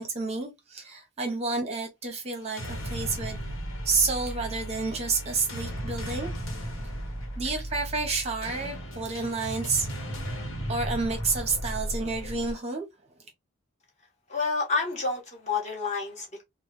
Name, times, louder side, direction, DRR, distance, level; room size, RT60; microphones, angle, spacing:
voice 1, 0.0-3.4 3.8-6.3 7.4-9.9 10.7-12.9, right 4 dB, 30° right, 0.7 m, -30 dB
sound 1, 2.4-12.5, right 1 dB, 90° left, 0.9 m, -35 dB
voice 2, 14.3-16.4, left 4 dB, 35° left, 1.0 m, -29 dB
3.1 x 2.0 x 3.0 m
head